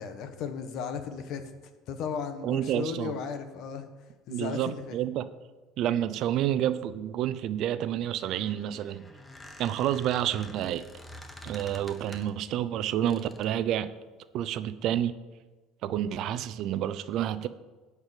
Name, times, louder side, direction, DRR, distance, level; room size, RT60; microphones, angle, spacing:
voice 1, 0.0-1.4 1.9-3.9 4.3-5.0, left 6 dB, 60° left, 1.3 m, -35 dB
voice 2, 2.4-3.2 4.3-5.3 5.8-9.1 9.6-10.9 11.4-13.9 14.3-15.1 15.8-17.5, right 11 dB, 60° right, 0.6 m, -29 dB
Squeak, 8.1-12.5 13.1-13.6, left 1 dB, 10° left, 1.2 m, -48 dB
11.5 x 4.9 x 8.4 m
supercardioid pair, 110°, 0 cm